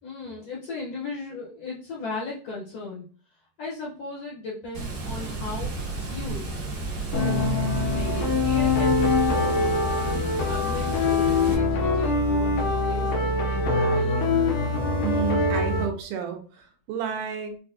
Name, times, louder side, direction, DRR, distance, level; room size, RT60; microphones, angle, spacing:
voice 1, 0.0-3.1 3.6-6.5 7.1-7.5 7.9-14.3, left 3 dB, 70° left, -6 dB, 1.5 m, -37 dB
Water, 4.7-11.5, right 3 dB, 55° right, 1.8 m, -32 dB
sound 1, 7.1-15.9, left 3 dB, 90° left, 1.4 m, -23 dB
voice 2, 15.0-17.6, right 8 dB, 80° right, 5 dB, 2.1 m, -31 dB
5.6 x 2.3 x 2.6 m, 0.40 s
omnidirectional pair, 4.0 m